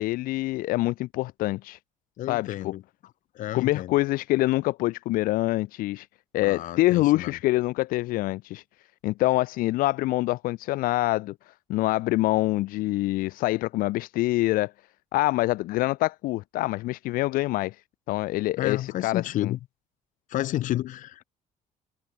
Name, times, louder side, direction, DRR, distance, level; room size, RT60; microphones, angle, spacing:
voice 1, 0.0-1.8 2.3-2.7 3.5-6.1 6.3-8.6 9.0-14.7 15.1-17.8 18.1-19.5, left 18 dB, 80° left, 0.6 m, -25 dB
voice 2, 2.2-2.8 3.3-4.0 6.4-7.4 18.6-19.6 20.3-21.2, left 14 dB, 65° left, 2.0 m, -31 dB
cardioid pair, 155°, 14 cm